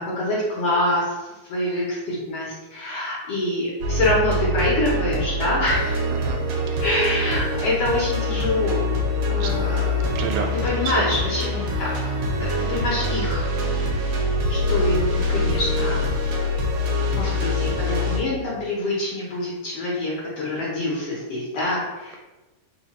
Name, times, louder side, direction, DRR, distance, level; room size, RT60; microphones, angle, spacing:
voice 1, 0.0-6.1 6.8-8.9 9.3-10.1 10.5-11.9 12.4-16.0 17.0-22.2, left 1 dB, 70° left, -6 dB, 1.4 m, -26 dB
sound 1, 3.8-18.2, left 1 dB, 70° right, 1.6 m, -24 dB
voice 2, 6.2-6.8 9.4-9.5 10.1-10.5 11.1-11.3 12.6-12.7, right 5 dB, 90° right, 3 dB, 2.1 m, -31 dB
4.8 x 2.1 x 4.0 m, 1.1 s
omnidirectional pair, 3.5 m